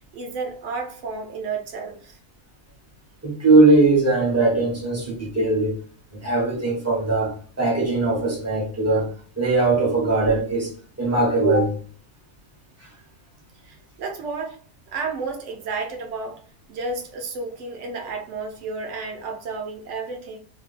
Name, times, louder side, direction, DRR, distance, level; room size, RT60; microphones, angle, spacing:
voice 1, 0.1-2.2 13.6-14.6 14.9-16.4 16.7-20.4, right 4 dB, 65° right, 0.9 m, -32 dB
voice 2, 3.2-5.7 6.1-10.7 11.0-11.8, right 2 dB, 15° right, 0.6 m, -20 dB
2.8 x 2.2 x 3.1 m
omnidirectional pair, 1.5 m